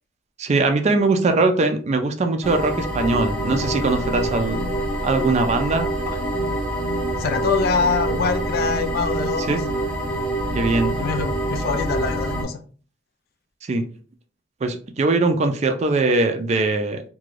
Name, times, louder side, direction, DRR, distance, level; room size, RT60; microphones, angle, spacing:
voice 1, 0.4-4.6 5.0-5.9 9.5-9.6 10.5-11.0 13.6-13.9 14.6-17.0, right 3 dB, 35° right, 6 dB, 0.4 m, -21 dB
sound 1, 2.4-12.4, right 1 dB, 5° left, 0.7 m, -26 dB
voice 2, 7.2-9.6 11.0-12.6, left 5 dB, 55° left, 8 dB, 0.3 m, -24 dB
2.4 x 2.2 x 3.1 m, 0.40 s
head